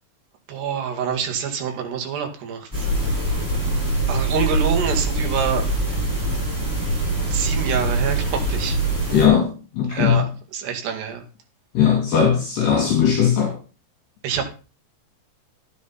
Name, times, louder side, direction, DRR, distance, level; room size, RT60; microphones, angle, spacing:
voice 1, 0.5-2.9 4.1-5.7 7.2-8.8 9.9-11.2 14.2-14.5, right 7 dB, 65° right, 3.9 m, -26 dB
sound 1, 2.7-9.3, right 2 dB, 5° right, 6.2 m, -23 dB
voice 2, 9.1-9.5 9.8-10.2 11.8-13.5, left 8 dB, 65° left, 4.3 m, -18 dB
14.0 x 10.0 x 4.1 m
omnidirectional pair, 5.4 m